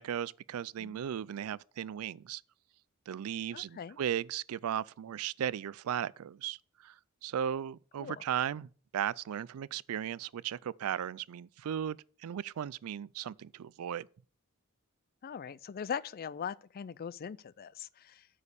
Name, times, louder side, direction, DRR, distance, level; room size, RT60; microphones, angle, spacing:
voice 1, 0.0-2.4 3.1-14.1, right 9 dB, 70° right, 0.4 m, -36 dB
voice 2, 3.5-4.0 8.0-8.2 15.2-18.3, left 7 dB, 45° left, 0.4 m, -41 dB
8.5 x 5.0 x 6.9 m
head